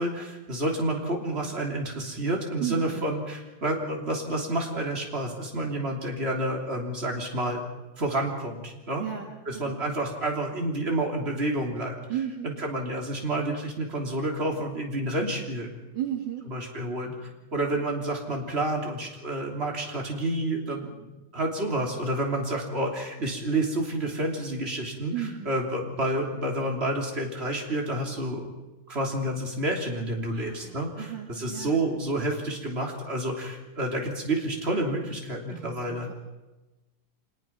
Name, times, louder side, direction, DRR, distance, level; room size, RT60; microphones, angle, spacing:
voice 1, 0.0-7.6 8.0-9.1 9.5-12.0 12.4-15.7 16.5-20.9 21.3-28.5 28.9-36.1, right 1 dB, 30° right, 0 dB, 3.5 m, -29 dB
voice 2, 2.6-3.1 9.0-9.3 9.5-9.8 12.1-12.5 15.9-16.5 25.1-25.5 30.3-31.8 35.5-36.1, right 10 dB, 60° right, 2 dB, 2.4 m, -34 dB
25.5 x 20.5 x 5.9 m, 1.1 s
omnidirectional pair, 2.3 m